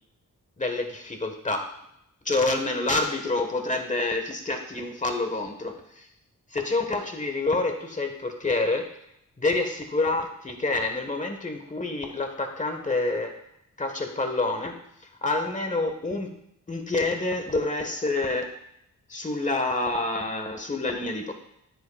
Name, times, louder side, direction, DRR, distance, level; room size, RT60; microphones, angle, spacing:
voice 1, 0.6-1.7 2.2-6.1 6.5-8.8 9.4-13.3 13.8-14.7 15.2-16.3 16.7-18.5 19.1-21.3, left 2 dB, 20° left, 5 dB, 1.3 m, -27 dB
9.7 x 9.3 x 2.3 m, 0.77 s
wide cardioid pair, 95°, 34 cm